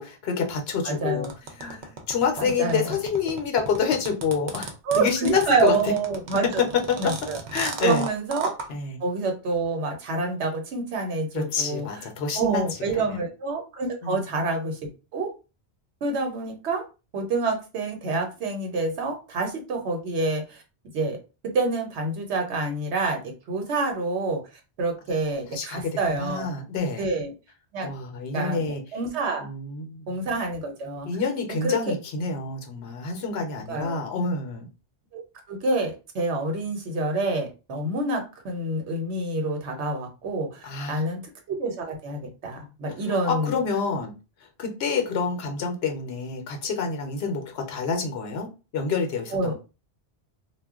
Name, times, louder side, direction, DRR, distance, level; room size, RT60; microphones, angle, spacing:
voice 1, 0.0-1.3 1.6-5.9 6.6-6.8 7.5-8.1 8.7-9.0 11.3-12.6 12.9-13.2 14.0-14.2 25.5-25.9 26.2-27.1 27.8-28.8 29.4-30.1 31.1-34.7 40.6-41.0 43.1-44.1 44.6-48.5 48.7-49.5, left 5 dB, 70° left, 0.9 m, -27 dB
voice 2, 0.8-1.3 2.4-2.8 4.9-6.6 7.0-7.4 7.8-8.5 9.0-11.9 12.3-15.3 16.0-16.8 17.1-20.6 20.9-21.2 21.4-24.4 24.8-26.5 27.0-27.3 27.7-27.9 28.3-29.5 30.1-31.1 31.6-31.7 33.7-34.0 35.1-35.2 35.5-41.2 41.5-43.6 49.3-49.5, right 3 dB, 80° right, 1.1 m, -27 dB
sound 1, 1.2-8.7, right 4 dB, 55° right, 0.6 m, -34 dB
2.3 x 2.2 x 3.5 m
omnidirectional pair, 1.1 m